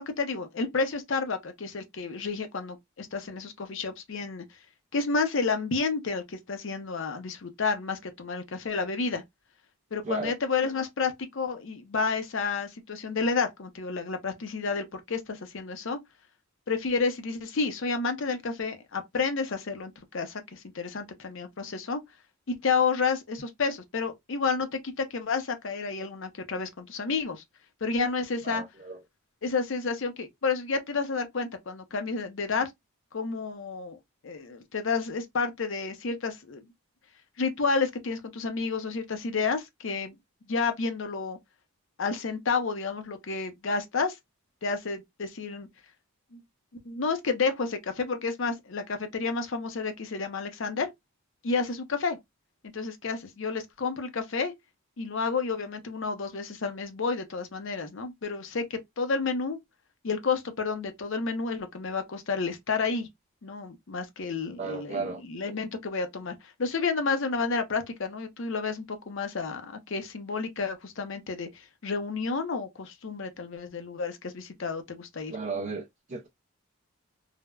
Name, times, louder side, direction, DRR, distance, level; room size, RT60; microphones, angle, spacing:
voice 1, 0.0-4.4 4.9-9.2 9.9-16.0 16.7-22.0 22.5-27.4 27.8-28.6 29.4-32.7 33.1-34.0 34.2-36.6 37.4-40.2 40.5-41.4 42.0-44.2 44.6-45.7 46.3-46.4 46.8-50.9 51.4-52.2 52.7-54.5 55.0-59.6 60.0-63.1 63.4-75.3, left 4 dB, 55° left, 0.5 m, -30 dB
voice 2, 10.0-10.4 28.4-29.0 64.6-65.2 75.3-76.3, right 4 dB, 35° right, 0.4 m, -34 dB
3.2 x 2.0 x 2.2 m
head